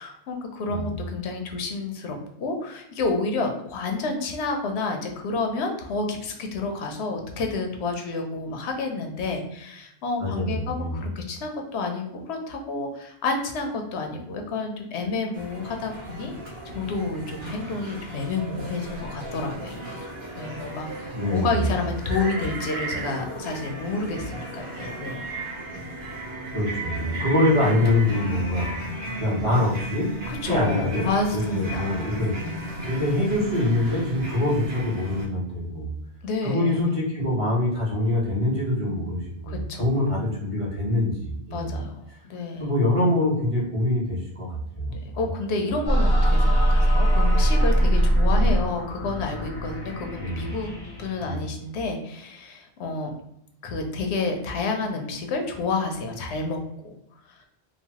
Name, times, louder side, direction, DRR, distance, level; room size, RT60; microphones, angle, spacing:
voice 1, 0.0-16.3 16.6-20.0 20.4-25.3 30.3-32.0 36.2-36.8 39.4-39.9 41.5-41.9 42.3-42.7 44.9-50.7 51.0-53.1 53.6-56.9 57.4-57.5, left 3 dB, 90° left, 3 dB, 0.9 m, -29 dB
voice 2, 10.2-11.0 21.1-21.6 26.5-28.7 29.2-30.1 30.4-31.1 31.3-32.3 32.8-35.9 36.4-41.7 42.6-44.9 48.3-48.5 50.2-50.4 51.2-51.4, left 1 dB, 35° right, -7 dB, 1.0 m, -24 dB
sound 1, 15.3-35.3, right 1 dB, 55° right, 1.1 m, -35 dB
sound 2, 45.9-51.3, right 1 dB, 30° left, 0.5 m, -21 dB
3.0 x 2.1 x 2.8 m, 0.77 s
omnidirectional pair, 1.1 m